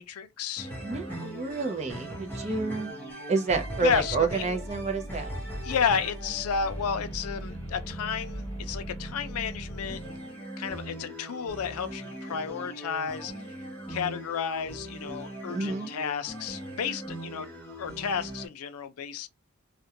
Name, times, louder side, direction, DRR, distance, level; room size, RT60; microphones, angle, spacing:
voice 1, 0.0-0.7 3.8-4.5 5.6-10.0 10.6-13.3 13.9-17.5 17.8-19.3, left 7 dB, 85° left, 0.4 m, -32 dB
sound 1, 0.6-18.5, right 1 dB, 10° left, 0.6 m, -39 dB
voice 2, 0.8-2.9 3.3-5.3 15.5-15.9, right 4 dB, 30° right, 0.5 m, -29 dB
2.4 x 2.1 x 2.8 m
head